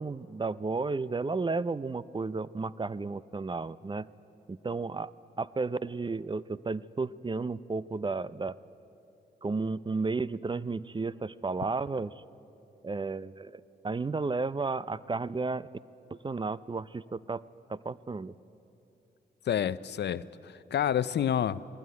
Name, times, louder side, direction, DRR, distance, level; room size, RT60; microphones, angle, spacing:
voice 1, 0.0-4.1 4.5-5.1 5.4-8.6 9.4-12.1 12.8-15.7 16.1-17.4 17.7-18.3, right 3 dB, 25° right, 18 dB, 0.5 m, -33 dB
voice 2, 19.5-21.6, left 9 dB, 70° left, 16 dB, 0.6 m, -29 dB
19.5 x 18.5 x 9.5 m, 2.8 s
cardioid pair, 55°, 19 cm